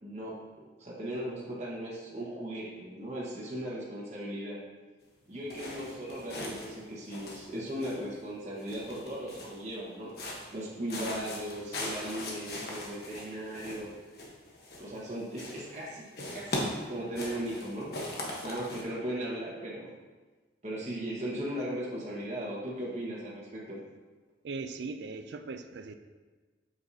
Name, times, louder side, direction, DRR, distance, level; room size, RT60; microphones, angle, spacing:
voice 1, 0.0-4.6 5.3-13.9 14.8-16.0 16.3-16.6 16.9-17.9 18.4-19.9 20.6-23.8, right 1 dB, 35° right, -6 dB, 1.4 m, -37 dB
sound 1, 5.5-8.2 8.6-9.7 10.1-10.6 10.9-15.1 15.3-15.9 16.1-18.8, left 1 dB, 55° left, 1.2 m, -40 dB
voice 2, 24.4-25.9, right 4 dB, 70° right, 8 dB, 0.4 m, -39 dB
7.8 x 5.7 x 2.8 m, 1.3 s
head